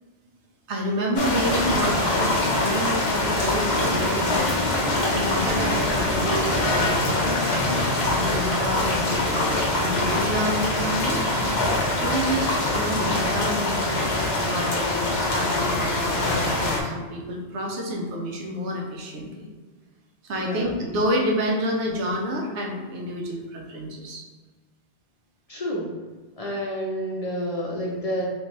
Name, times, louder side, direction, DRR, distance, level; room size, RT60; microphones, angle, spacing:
voice 1, 0.7-4.4 5.1-7.4 8.0-9.2 9.8-11.5 12.0-14.0 14.3-19.5 20.2-24.2, equal, 90° right, 0 dB, 1.0 m, -29 dB
sound 1, 1.2-16.8, left 2 dB, 65° left, 0.9 m, -24 dB
voice 2, 8.2-8.6 20.4-20.7 25.5-25.9 26.4-28.3, equal, 45° left, -4 dB, 0.5 m, -29 dB
3.3 x 3.0 x 3.0 m, 1.4 s
omnidirectional pair, 1.1 m